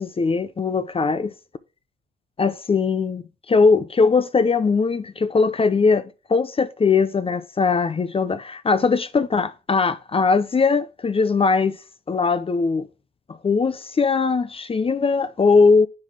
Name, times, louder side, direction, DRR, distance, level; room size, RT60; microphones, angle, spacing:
voice 1, 0.0-1.3 2.4-11.8 12.1-12.9 13.3-15.9, left 4 dB, 30° left, 0.6 m, -20 dB
9.6 x 4.1 x 4.8 m
cardioid pair, 90°, 20 cm